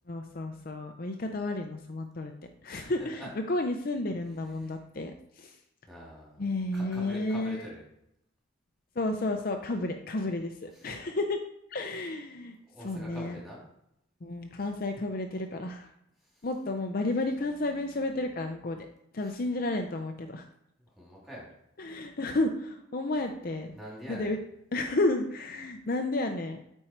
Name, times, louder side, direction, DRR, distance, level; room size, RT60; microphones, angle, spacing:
voice 1, 0.1-2.3 2.6-5.6 6.4-7.7 9.0-11.4 11.7-12.6 12.8-13.4 14.2-15.9 16.4-18.9 19.1-20.4 21.8-23.7 24.1-24.4 24.7-26.6, left 2 dB, 45° left, 5 dB, 0.6 m, -32 dB
voice 2, 2.7-3.3 4.6-4.7 5.9-6.5 6.7-7.8 10.7-10.9 12.7-13.6 16.3-16.4 19.2-19.3 20.8-21.5 23.7-24.3, equal, ahead, -5 dB, 2.7 m, -45 dB
8.8 x 4.6 x 4.5 m, 0.80 s
head